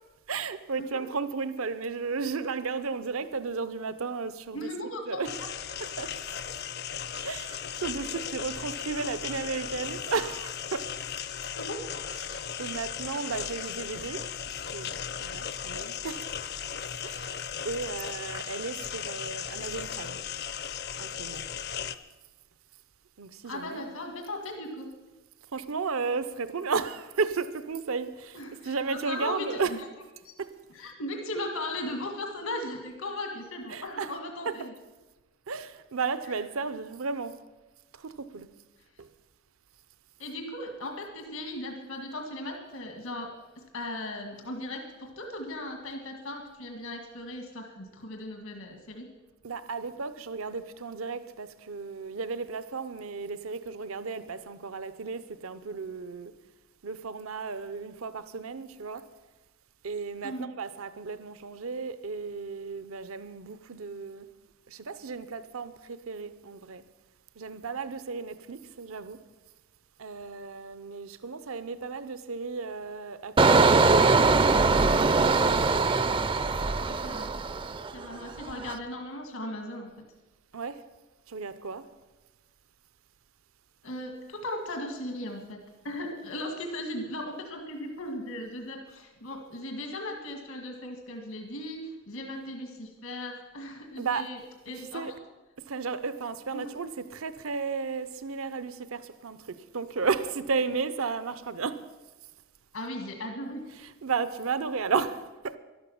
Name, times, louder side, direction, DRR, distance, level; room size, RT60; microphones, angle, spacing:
voice 1, 0.3-4.7 5.0-5.3 5.8-6.1 7.2-10.9 12.1-14.2 14.7-16.2 17.0-17.4 17.6-20.2 21.0-21.4 23.2-23.9 25.5-29.8 33.7-34.2 34.4-34.7 35.5-37.4 37.9-38.5 39.0-39.1 49.4-56.3 56.8-59.1 59.8-64.3 64.7-66.8 67.4-69.2 70.0-74.9 75.4-75.6 80.5-80.8 81.3-81.9 94.0-94.3 94.7-95.1 95.7-101.8 103.7-105.6, right 5 dB, 85° right, 0.7 m, -34 dB
voice 2, 4.5-5.5 11.5-11.9 23.4-24.9 28.3-29.9 30.7-34.7 40.2-49.1 60.2-60.5 76.9-77.3 77.9-79.9 83.8-85.6 85.8-91.8 92.1-94.4 94.7-95.1 96.5-96.6 102.7-103.7, left 1 dB, 80° left, 1.9 m, -37 dB
sound 1, 5.2-21.9, left 8 dB, 50° left, 0.5 m, -37 dB
Engine, 73.4-78.0 78.4-78.7, right 3 dB, 25° right, 0.4 m, -22 dB
12.0 x 12.0 x 7.1 m
head